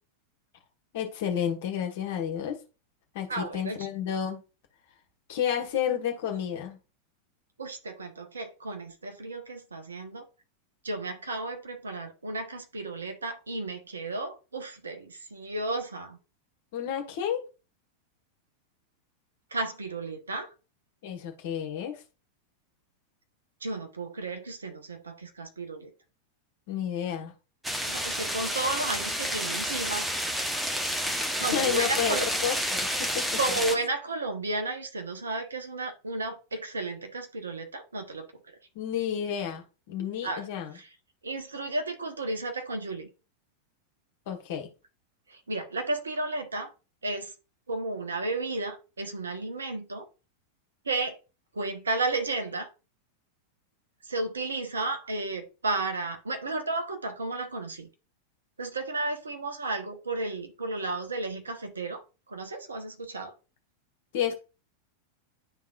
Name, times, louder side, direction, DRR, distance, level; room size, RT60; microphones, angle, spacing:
voice 1, 0.9-2.6 3.1-4.4 5.3-6.8 16.7-17.4 21.0-22.0 26.7-27.3 31.5-33.3 38.7-40.8 44.3-44.7 64.1-64.3, left 9 dB, 55° left, 1.5 m, -31 dB
voice 2, 3.3-3.9 7.6-10.3 10.8-16.2 19.5-20.5 23.6-25.9 27.9-30.1 31.4-32.3 33.4-38.6 40.2-40.4 40.7-40.9 41.2-43.1 45.3-46.7 47.0-47.3 47.7-50.1 50.8-51.2 51.5-52.7 54.0-57.9 58.6-62.0 62.3-63.3, right 2 dB, 75° right, 1.2 m, -33 dB
sound 1, 27.6-33.8, equal, 5° right, 1.1 m, -30 dB
11.0 x 3.6 x 2.5 m
figure-of-eight pair, 90°, 0 cm